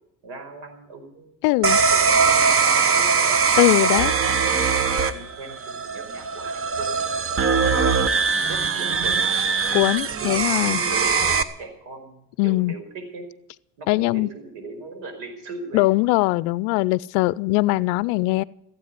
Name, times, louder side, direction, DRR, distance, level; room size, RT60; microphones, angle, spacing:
voice 1, 0.2-3.4 3.8-4.0 4.5-7.2 8.3-9.3 9.5-9.9 10.2-13.3 13.8-15.9, right 3 dB, 60° right, 5 dB, 5.2 m, -39 dB
voice 2, 1.4-1.8 3.6-4.1 9.7-10.8 12.4-12.7 13.9-14.3 15.7-18.4, left 21 dB, 65° left, 22 dB, 0.6 m, -21 dB
sound 1, 1.6-11.4, right 5 dB, 30° right, 1.2 m, -21 dB
15.5 x 8.5 x 9.5 m, 0.79 s
hypercardioid pair, 70°, 46 cm